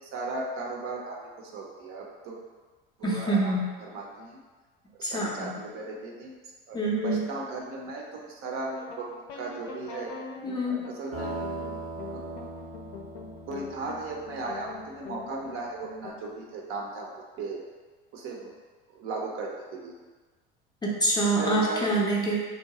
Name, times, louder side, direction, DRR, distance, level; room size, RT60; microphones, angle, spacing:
voice 1, 0.0-2.4 3.0-4.4 4.9-6.3 6.7-9.1 9.3-10.1 10.7-11.3 12.1-12.3 13.5-17.1 17.4-17.7 18.1-18.6 18.9-20.0 21.3-22.0, right 3 dB, 45° right, -1 dB, 0.6 m, -36 dB
voice 2, 3.0-3.7 5.0-5.5 6.7-7.2 10.4-10.8 20.8-22.4, right 1 dB, 15° left, -4 dB, 0.5 m, -26 dB
sound 1, 8.7-16.1, left 5 dB, 65° left, 0.5 m, -44 dB
sound 2, 11.1-15.4, right 2 dB, 80° right, 1.1 m, -39 dB
2.8 x 2.1 x 2.9 m, 1.4 s
hypercardioid pair, 75°, 30 cm